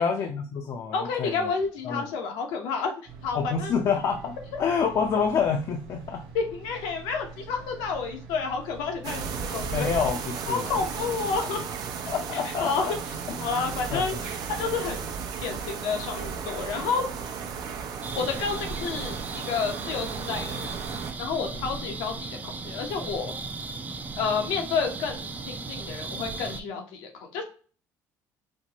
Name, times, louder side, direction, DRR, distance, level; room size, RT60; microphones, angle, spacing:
voice 1, 0.0-1.4 1.8-2.1 3.3-6.2 9.7-10.2 10.5-10.7 12.1-12.9 13.6-14.0, left 6 dB, 55° left, 0.5 m, -27 dB
voice 2, 0.9-3.0 3.2-3.7 6.3-9.9 10.5-11.6 12.3-13.0 13.4-15.0 15.4-17.0 18.2-22.2 22.4-23.3 24.2-27.4, left 5 dB, 85° left, 0.8 m, -30 dB
sound 1, 3.1-10.1, right 4 dB, 90° right, 0.9 m, -45 dB
sound 2, 9.0-21.1, right 6 dB, 65° right, 0.6 m, -34 dB
sound 3, 18.0-26.6, right 4 dB, 20° right, 0.4 m, -36 dB
4.3 x 2.1 x 2.9 m
cardioid pair, 100°, 7 cm